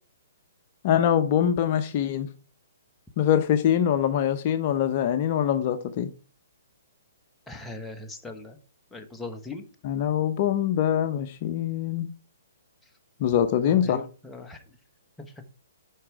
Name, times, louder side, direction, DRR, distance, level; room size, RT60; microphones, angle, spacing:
voice 1, 0.8-2.3 3.2-6.1 9.8-12.1 13.2-14.0, left 9 dB, 40° left, 0.7 m, -23 dB
voice 2, 7.5-8.6 8.9-9.7 13.6-14.6, left 3 dB, 5° left, 1.2 m, -39 dB
11.5 x 4.9 x 4.6 m
hypercardioid pair, 140°, 0 cm